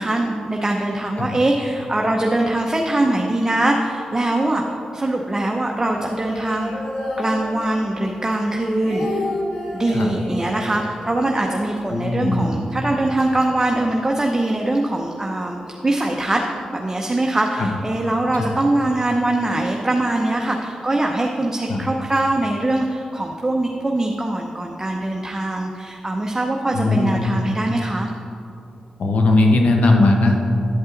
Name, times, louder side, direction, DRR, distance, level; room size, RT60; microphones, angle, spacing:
voice 1, 0.0-4.6 4.9-6.7 7.2-9.2 9.7-16.4 16.7-28.1, right 1 dB, 20° right, 1 dB, 0.7 m, -22 dB
sound 1, 5.8-8.0 8.3-12.2 12.5-12.6 12.9-13.4, left 2 dB, 85° left, 2.0 m, -31 dB
voice 2, 11.9-12.5 17.6-17.7 21.7-21.8 26.7-27.2 29.0-30.4, left 2 dB, 70° left, 2 dB, 1.0 m, -17 dB
11.0 x 5.4 x 3.9 m, 2.7 s
supercardioid pair, 45°, 2 cm